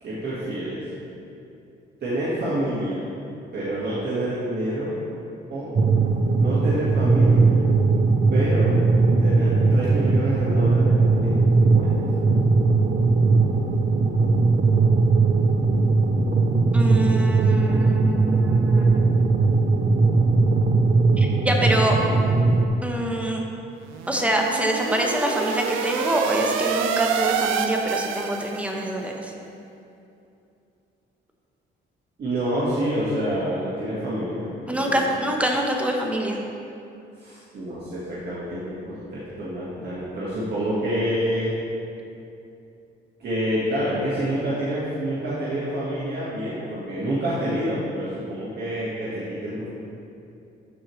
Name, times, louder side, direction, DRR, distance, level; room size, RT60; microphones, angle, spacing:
voice 1, 0.0-0.8 2.0-3.1 3.5-4.9 5.5-5.7 6.4-7.5 8.3-8.8 9.2-10.9 11.2-12.2 32.2-35.0 37.2-41.5 43.2-49.7, right 1 dB, 55° right, -9 dB, 1.7 m, -27 dB
sound 1, 5.7-22.7, right 3 dB, 40° right, 0.7 m, -19 dB
voice 2, 16.7-19.5 21.2-22.0 22.8-23.4 24.1-29.3 34.7-36.4, right 1 dB, 5° right, 0 dB, 1.0 m, -25 dB
sound 2, 23.9-28.9, right 7 dB, 90° right, 0.5 m, -27 dB
12.5 x 4.6 x 3.2 m, 2.7 s
cardioid pair, 90°, 20 cm